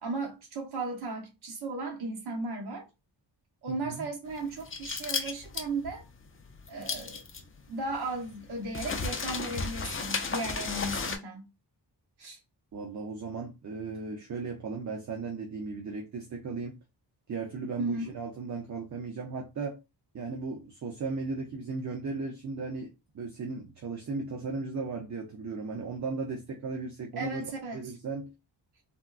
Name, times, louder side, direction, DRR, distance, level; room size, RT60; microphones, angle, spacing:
voice 1, 0.0-2.9 3.6-6.0 6.7-7.2 7.7-11.5 12.2-12.4 17.8-18.0 27.2-27.9, right 2 dB, 60° right, 0.9 m, -35 dB
voice 2, 3.7-4.1 12.7-16.8 17.3-19.8 20.1-27.4 27.7-28.3, right 4 dB, 40° right, 0.5 m, -36 dB
sound 1, 4.3-11.2, left 4 dB, 30° left, 0.4 m, -34 dB
3.6 x 2.2 x 2.3 m
wide cardioid pair, 145°, 45 cm